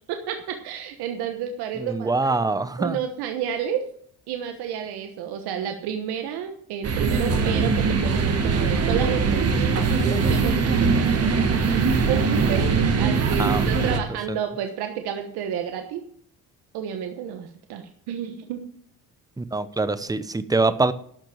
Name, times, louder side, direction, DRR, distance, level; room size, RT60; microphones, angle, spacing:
voice 1, 0.1-2.4 2.8-3.8 4.3-11.1 12.1-16.0 16.7-18.6, right 8 dB, 85° right, 5 dB, 1.2 m, -30 dB
voice 2, 1.8-3.0 13.4-14.0 14.3-14.4 19.4-20.9, right 3 dB, 10° right, 14 dB, 0.7 m, -24 dB
sound 1, 6.8-14.0, right 4 dB, 40° right, 1.5 m, -21 dB
12.0 x 5.9 x 7.3 m, 0.63 s
cardioid pair, 105°, 38 cm